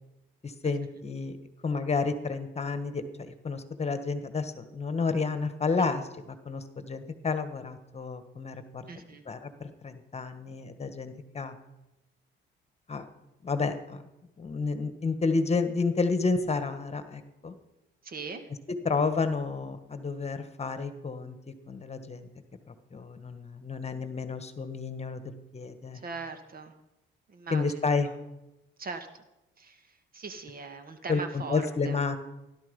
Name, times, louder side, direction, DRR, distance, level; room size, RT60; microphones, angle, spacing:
voice 1, 0.4-1.4 1.6-8.8 9.3-11.5 12.9-13.0 13.4-14.0 14.4-17.5 18.8-21.4 21.7-22.3 22.7-26.0 27.5-28.1 31.1-32.2, left 4 dB, 30° left, 9 dB, 1.5 m, -30 dB
voice 2, 8.9-9.2 18.0-18.5 25.9-26.8 27.3-28.2 28.8-29.1 29.6-32.0, right 4 dB, 45° right, 8 dB, 1.8 m, -41 dB
16.5 x 12.0 x 5.4 m, 0.95 s
cardioid pair, 90°, 20 cm